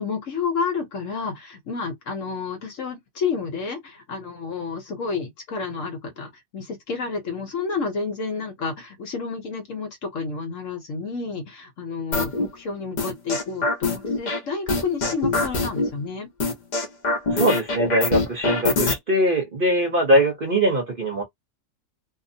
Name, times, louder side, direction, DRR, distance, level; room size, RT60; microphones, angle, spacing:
voice 1, 0.0-16.3, left 5 dB, 60° left, 1.1 m, -30 dB
sound 1, 12.1-12.5 13.0-14.4 14.7-15.9 16.4-18.9, left 2 dB, 40° left, 0.6 m, -23 dB
voice 2, 17.3-21.2, right 1 dB, 40° right, 0.9 m, -21 dB
2.8 x 2.1 x 2.6 m
omnidirectional pair, 1.7 m